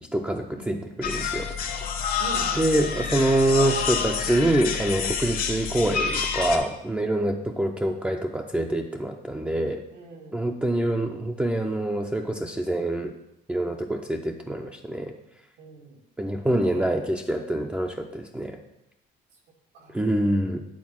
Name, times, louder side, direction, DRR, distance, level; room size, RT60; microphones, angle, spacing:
voice 1, 0.0-1.5 2.5-9.8 10.3-13.1 13.5-15.1 16.2-18.6 19.9-20.6, right 1 dB, 5° right, 2 dB, 0.5 m, -25 dB
voice 2, 0.6-0.9 2.2-3.0 7.3-7.5 9.9-10.4 15.6-16.0 16.6-17.3 19.7-20.0, right 2 dB, 90° right, 0 dB, 1.9 m, -43 dB
sound 1, 1.0-6.6, left 6 dB, 60° left, 1.1 m, -28 dB
8.5 x 4.0 x 5.9 m, 0.85 s
cardioid pair, 110°, 17 cm